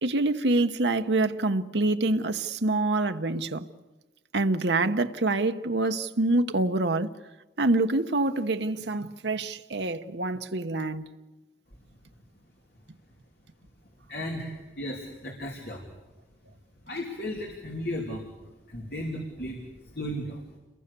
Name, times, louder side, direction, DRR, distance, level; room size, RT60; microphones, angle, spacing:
voice 1, 0.0-3.7 4.3-7.1 7.6-11.1, right 2 dB, 75° right, 1.1 m, -26 dB
voice 2, 14.1-15.9 16.8-20.4, left 1 dB, 60° left, 3.2 m, -35 dB
29.5 x 22.5 x 6.9 m
head